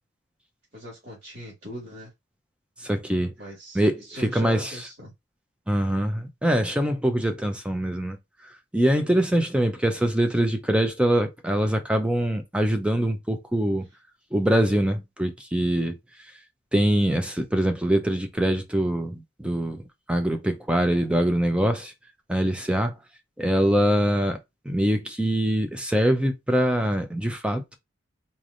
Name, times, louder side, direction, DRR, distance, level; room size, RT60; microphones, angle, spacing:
voice 1, 0.7-2.1 3.4-5.1, equal, 50° right, 2.0 m, -40 dB
voice 2, 2.8-3.3 3.7-4.7 5.7-8.2 8.7-13.9 14.3-16.0 16.7-19.8 20.1-21.9 22.3-22.9 23.4-24.4 24.6-27.8, right 1 dB, 5° right, 0.6 m, -23 dB
4.2 x 3.3 x 2.5 m
head